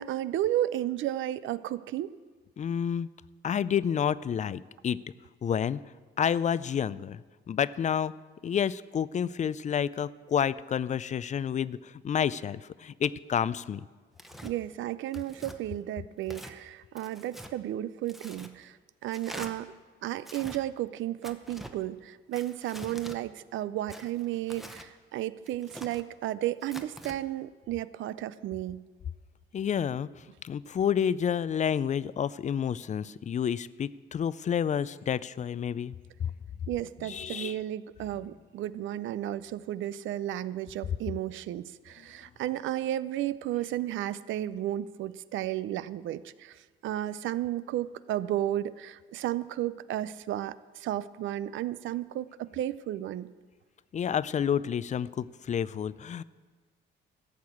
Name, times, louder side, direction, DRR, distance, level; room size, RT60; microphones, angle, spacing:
voice 1, 0.0-2.1 14.4-19.7 20.0-28.8 36.7-53.3, right 13 dB, 75° right, 16 dB, 0.5 m, -33 dB
voice 2, 2.6-3.1 3.4-5.0 5.4-5.8 6.2-7.2 7.5-8.1 8.4-13.8 29.5-30.1 30.4-35.9 36.2-36.3 37.0-37.6 53.9-56.2, left 8 dB, 35° left, 18 dB, 0.4 m, -29 dB
Tearing, 14.2-14.5 15.1-15.6 16.2-16.6 17.0-17.5 18.1-18.5 19.1-19.5 20.2-20.6 21.2-21.7 22.3-23.2 23.9-24.9 25.5-26.0 26.6-27.2, equal, ahead, 0.9 m, -45 dB
13.5 x 6.1 x 8.5 m, 1.4 s
cardioid pair, 90°, 20 cm